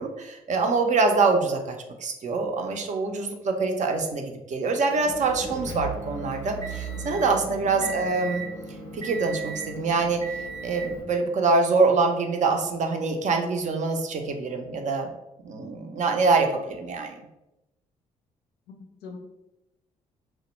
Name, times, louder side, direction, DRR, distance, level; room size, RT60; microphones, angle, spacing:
voice 1, 0.0-1.7 2.0-8.4 8.9-10.2 10.6-15.1 15.4-17.2, right 4 dB, 40° right, 4 dB, 0.4 m, -25 dB
Motor vehicle (road) / Engine, 4.9-11.0, right 4 dB, 85° right, 0.6 m, -36 dB
voice 2, 18.7-19.2, left 3 dB, 60° left, 2 dB, 0.5 m, -41 dB
2.1 x 2.0 x 3.0 m, 0.91 s
hypercardioid pair, 45°, 18 cm